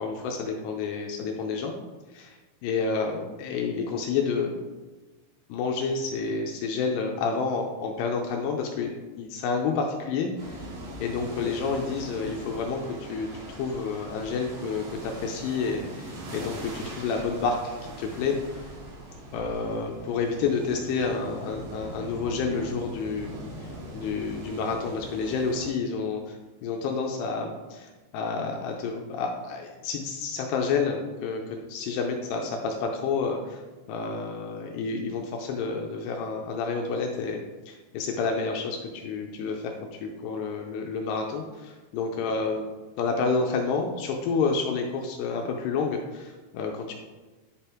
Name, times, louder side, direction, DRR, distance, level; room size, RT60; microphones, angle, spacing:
voice 1, 0.0-1.7 2.1-4.5 5.5-10.7 11.0-18.7 19.3-23.3 23.6-26.4 26.6-33.6 33.9-42.6 43.0-46.9, left 4 dB, 80° left, 2 dB, 2.6 m, -29 dB
sound 1, 10.4-25.7, right 1 dB, 70° right, 4.4 m, -41 dB
10.5 x 5.2 x 4.4 m, 1.2 s
omnidirectional pair, 5.1 m